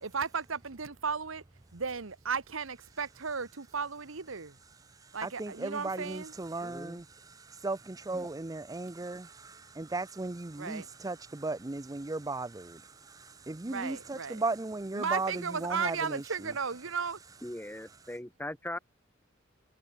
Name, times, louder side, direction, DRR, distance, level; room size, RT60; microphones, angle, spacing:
voice 1, 0.0-1.4 1.7-4.5 5.1-6.3 10.6-10.9 13.6-14.4 14.9-17.2, right 5 dB, 75° right, 1.2 m, -35 dB
voice 2, 4.6-16.5, right 3 dB, 15° right, 0.5 m, -37 dB
voice 3, 6.6-7.0 8.1-8.3 17.4-18.8, left 1 dB, 10° left, 2.0 m, -40 dB
head